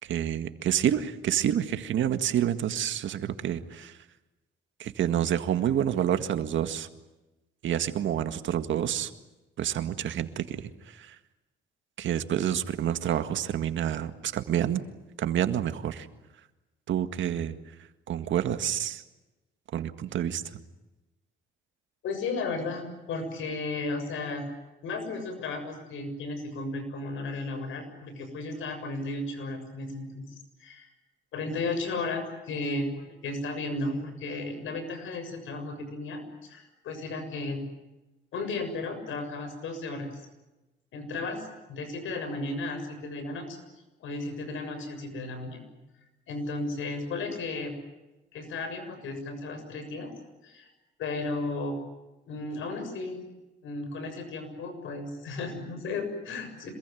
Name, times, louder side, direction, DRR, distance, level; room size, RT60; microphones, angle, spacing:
voice 1, 0.0-4.0 4.8-6.9 7.6-9.1 9.6-11.2 12.0-14.8 15.2-16.1 16.9-17.6 18.1-19.0 19.7-20.4, right 10 dB, 70° right, 9 dB, 1.9 m, -28 dB
voice 2, 22.0-24.4 24.8-30.3 30.6-30.9 31.3-37.6 38.3-40.2 40.9-43.6 44.0-45.7 46.3-47.7 48.3-50.1 50.4-50.7 51.0-51.8 52.3-53.2 53.6-56.7, left 3 dB, 80° left, 8 dB, 7.1 m, -34 dB
27.0 x 21.5 x 9.3 m, 1.0 s
cardioid pair, 90°, 20 cm